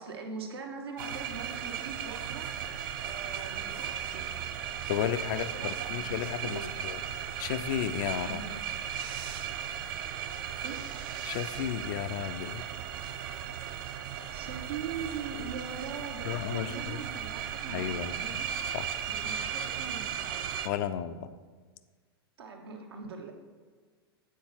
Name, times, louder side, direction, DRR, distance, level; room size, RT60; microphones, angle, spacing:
voice 1, 0.0-2.5 3.0-4.3 5.3-6.0 6.4-6.7 8.2-8.4 10.6-10.8 14.3-18.5 19.1-20.5 22.4-23.3, right 5 dB, 75° right, 3 dB, 0.9 m, -41 dB
sound 1, 1.0-20.7, right 8 dB, 55° right, 0.5 m, -36 dB
voice 2, 4.9-8.4 11.2-12.6 16.2-17.0 17.7-18.1 18.7-18.9 20.6-21.3, left 10 dB, 55° left, 12 dB, 0.4 m, -33 dB
7.4 x 3.9 x 3.9 m, 1.5 s
hypercardioid pair, 100°, 13 cm